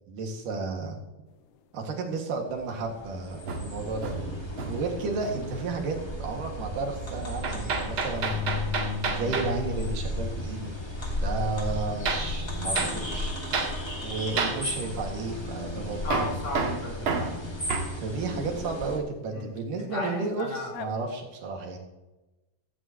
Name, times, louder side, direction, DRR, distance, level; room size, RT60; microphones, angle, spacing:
voice 1, 0.1-1.0 1.7-4.2 4.7-8.5 9.1-10.7 11.2-13.3 14.0-16.4 18.0-21.8, right 3 dB, 85° right, 2 dB, 3.7 m, -33 dB
sound 1, 2.5-19.0, equal, 10° left, 1.6 m, -35 dB
sound 2, 2.6-14.2 20.4-20.5 20.7-20.9, left 6 dB, 85° left, 2.5 m, -40 dB
Hammer, 3.5-4.9 5.2-5.5 7.4-9.6 12.1-12.3 12.8-13.0 13.5-13.8 14.4-14.6 16.1-18.0, right 4 dB, 50° right, 2.0 m, -30 dB
voice 2, 16.0-17.4 19.3-19.5 19.8-20.7, left 2 dB, 65° left, -2 dB, 5.3 m, -34 dB
15.5 x 14.5 x 3.0 m, 1.0 s
omnidirectional pair, 3.7 m